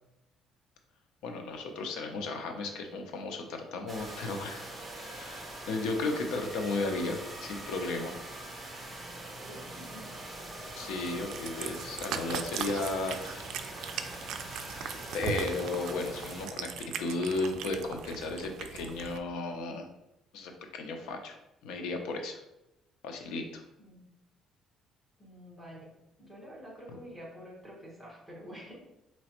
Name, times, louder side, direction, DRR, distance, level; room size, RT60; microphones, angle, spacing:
voice 1, 1.2-8.1 10.8-13.5 14.9-16.7 17.0-19.9 20.3-21.4 21.6-22.4 23.0-23.6, left 3 dB, 90° left, 4 dB, 0.6 m, -34 dB
sound 1, 3.9-16.5, right 1 dB, 20° right, 0.7 m, -43 dB
voice 2, 9.2-10.1 23.8-24.1 25.2-25.9 26.2-28.8, equal, ahead, -4 dB, 1.3 m, -48 dB
Cat, 11.0-19.2, right 7 dB, 70° right, 0.3 m, -39 dB
4.2 x 3.0 x 2.9 m, 0.91 s
cardioid pair, 150°, 0 cm